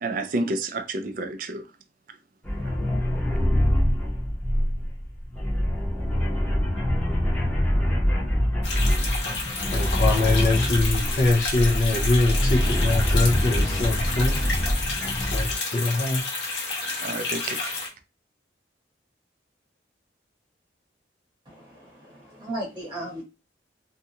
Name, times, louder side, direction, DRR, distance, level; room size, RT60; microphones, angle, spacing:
voice 1, 0.0-1.6 17.0-17.6, right 2 dB, 45° right, 0.4 m, -29 dB
sound 1, 2.4-15.5, equal, 10° left, 0.8 m, -24 dB
sound 2, 8.6-17.9, left 3 dB, 75° left, 0.9 m, -30 dB
voice 2, 9.7-14.3 15.3-16.3, left 2 dB, 45° left, 0.5 m, -23 dB
voice 3, 21.4-23.2, right 1 dB, 25° right, 0.9 m, -36 dB
2.7 x 2.2 x 2.7 m
head